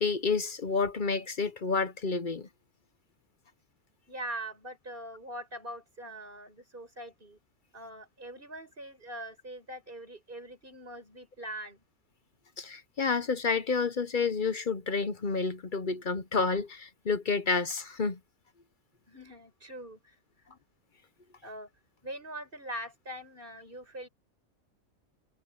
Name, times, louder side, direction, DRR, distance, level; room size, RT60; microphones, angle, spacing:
voice 1, 0.0-2.5 12.6-18.2, left 4 dB, 45° left, 0.8 m, -29 dB
voice 2, 4.1-7.4 7.7-11.8 19.1-20.2 20.4-20.6 21.4-21.7 22.0-24.1, right 1 dB, 40° right, 6.3 m, -42 dB
omnidirectional pair, 1.4 m